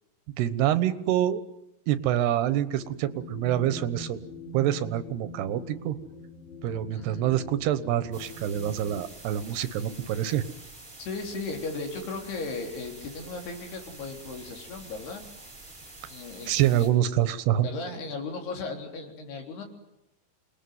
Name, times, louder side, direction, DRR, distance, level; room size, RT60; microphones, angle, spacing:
voice 1, 0.4-1.4 1.9-4.2 4.5-6.0 6.6-10.4 16.5-17.7, right 12 dB, 90° right, 13 dB, 3.3 m, -26 dB
sound 1, 2.8-9.1, left 1 dB, 40° left, 5.7 m, -43 dB
voice 2, 6.9-7.4 11.0-15.2 16.1-16.9 17.6-19.6, left 3 dB, 80° left, 3 dB, 5.8 m, -36 dB
sound 2, 8.1-16.9, right 2 dB, 20° right, 6.5 m, -47 dB
28.5 x 21.0 x 9.5 m, 0.88 s
omnidirectional pair, 4.6 m